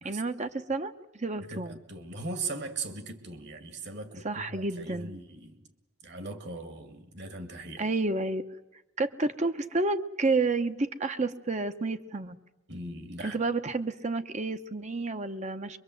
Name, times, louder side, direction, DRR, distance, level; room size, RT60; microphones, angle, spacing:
voice 1, 0.0-1.8 4.2-5.1 7.8-8.4 9.0-12.4 13.2-15.8, right 3 dB, 35° right, 8 dB, 0.9 m, -30 dB
voice 2, 1.5-5.7 6.0-7.8 12.7-13.4, right 3 dB, 55° right, 8 dB, 2.2 m, -39 dB
23.5 x 23.0 x 7.8 m, 1.0 s
head